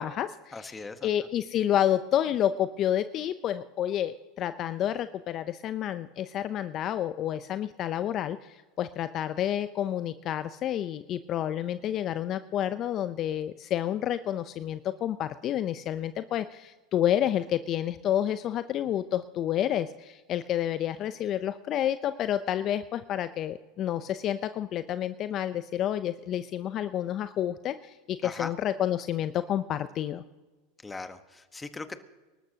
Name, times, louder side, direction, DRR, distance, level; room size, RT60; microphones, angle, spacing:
voice 1, 0.0-30.2, left 11 dB, 45° left, 12 dB, 0.6 m, -29 dB
voice 2, 0.5-1.1 28.2-28.5 30.8-32.0, left 3 dB, 15° left, 10 dB, 1.2 m, -39 dB
25.5 x 13.0 x 2.8 m, 1.2 s
hypercardioid pair, 95°, 0 cm